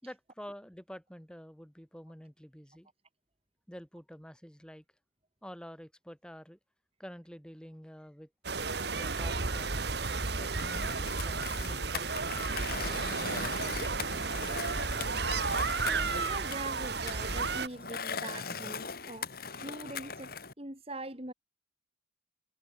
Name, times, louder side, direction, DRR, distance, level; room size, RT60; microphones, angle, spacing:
voice 1, 0.0-2.9 3.7-4.8 5.4-6.6 7.0-8.3 9.0-9.9 10.4-12.4, equal, 5° left, 7.8 m, -48 dB
sound 1, 8.4-17.7, right 4 dB, 55° right, 1.5 m, -33 dB
Skateboard, 10.5-20.5, left 5 dB, 50° left, 2.0 m, -41 dB
voice 2, 15.7-19.3 19.6-21.3, right 1 dB, 30° right, 3.4 m, -43 dB
head